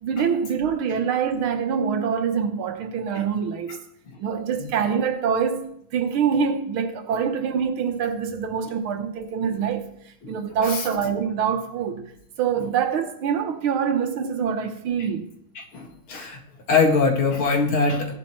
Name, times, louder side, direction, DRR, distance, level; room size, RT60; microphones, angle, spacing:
voice 1, 0.0-3.8 4.2-12.1 12.4-15.3, right 7 dB, 90° right, 2.0 m, -25 dB
voice 2, 15.6-16.4 16.7-18.2, left 4 dB, 90° left, 3.0 m, -22 dB
15.5 x 11.5 x 3.2 m
omnidirectional pair, 2.2 m